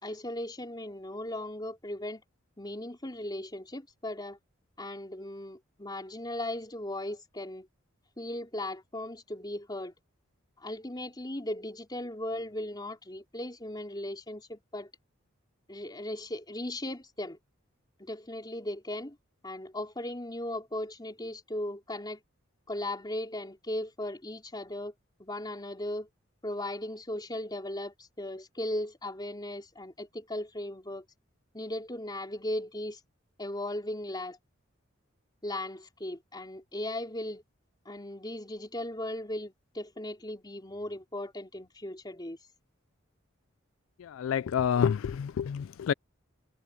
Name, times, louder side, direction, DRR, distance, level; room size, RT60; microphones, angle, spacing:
voice 1, 0.0-2.2 2.6-4.4 4.8-7.7 8.2-9.9 10.6-14.9 15.7-17.4 18.0-19.2 19.4-22.2 22.7-24.9 25.2-26.1 26.4-31.0 31.5-33.0 33.4-34.4 35.4-37.4 37.9-42.4, left 1 dB, 20° left, 3.6 m, -37 dB
voice 2, 44.0-45.9, left 8 dB, 80° left, 0.3 m, -28 dB
head